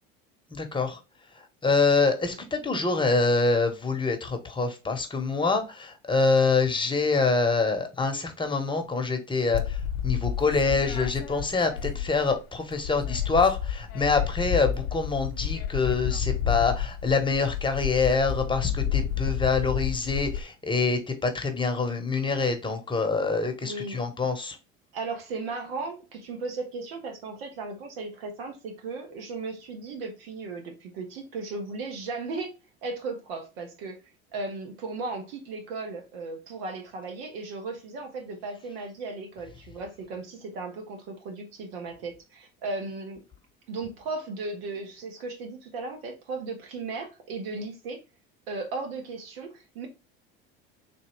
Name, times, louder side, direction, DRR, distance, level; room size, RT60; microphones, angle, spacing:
voice 1, 0.5-1.0 1.3-24.6, left 4 dB, 15° left, 0.9 m, -25 dB
sound 1, 9.5-12.4 12.7-20.4, left 9 dB, 70° left, 0.7 m, -30 dB
voice 2, 23.6-24.0 24.9-32.5 32.8-34.0 34.3-43.2 43.7-48.0 48.5-49.9, right 3 dB, 80° right, 1.3 m, -36 dB
3.9 x 2.7 x 3.1 m
supercardioid pair, 95°, 30 cm